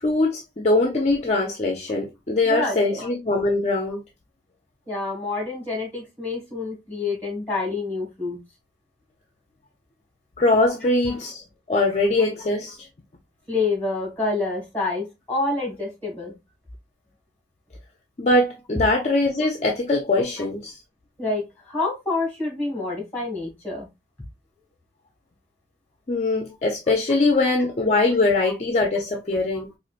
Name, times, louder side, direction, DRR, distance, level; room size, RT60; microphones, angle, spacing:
voice 1, 0.0-4.0 10.4-12.9 18.2-20.8 26.1-29.7, left 2 dB, 40° left, 0.5 m, -22 dB
voice 2, 2.4-3.1 4.9-8.4 11.1-11.2 13.5-16.4 21.2-23.9 28.4-28.5 29.5-29.6, left 3 dB, 10° left, 1.7 m, -28 dB
4.3 x 2.5 x 2.4 m
head